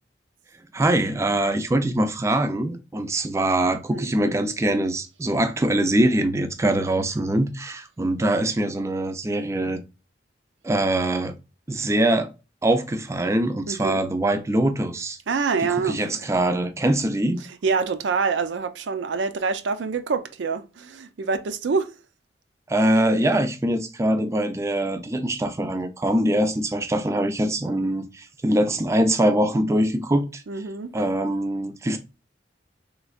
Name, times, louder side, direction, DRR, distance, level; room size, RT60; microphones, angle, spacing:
voice 1, 0.7-9.8 10.6-11.4 11.7-12.3 12.6-15.2 15.8-17.4 22.7-30.4 30.9-32.0, right 1 dB, 15° right, 0.3 m, -23 dB
voice 2, 13.7-14.0 15.3-16.0 17.6-21.9 30.5-30.9, right 5 dB, 85° right, 0.4 m, -26 dB
3.4 x 3.1 x 2.3 m
head